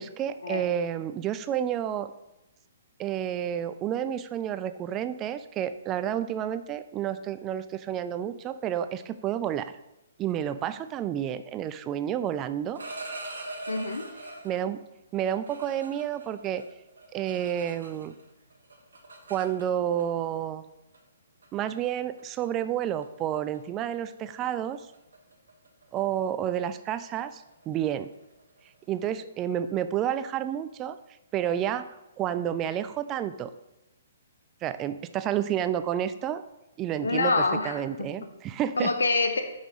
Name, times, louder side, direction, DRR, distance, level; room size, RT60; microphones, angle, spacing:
voice 1, 0.0-2.1 3.0-9.7 10.2-12.8 14.4-14.8 15.1-16.6 17.1-18.1 19.3-20.6 21.5-24.8 25.9-28.1 28.9-31.0 31.3-31.9 32.2-33.5 34.6-36.4 36.8-38.9, right 10 dB, 25° right, 13 dB, 0.3 m, -30 dB
sound 1, 12.7-14.7 15.2-18.2 18.5-20.0 20.9-21.1 21.4-21.8 22.2-22.5 22.8-23.0 23.3-23.6 23.8-29.2, right 2 dB, 75° right, 1.2 m, -43 dB
voice 2, 13.7-14.1 37.0-38.1 38.8-39.4, left 3 dB, 75° left, 6 dB, 0.9 m, -26 dB
5.5 x 5.1 x 4.8 m, 0.94 s
figure-of-eight pair, 125°, 0 cm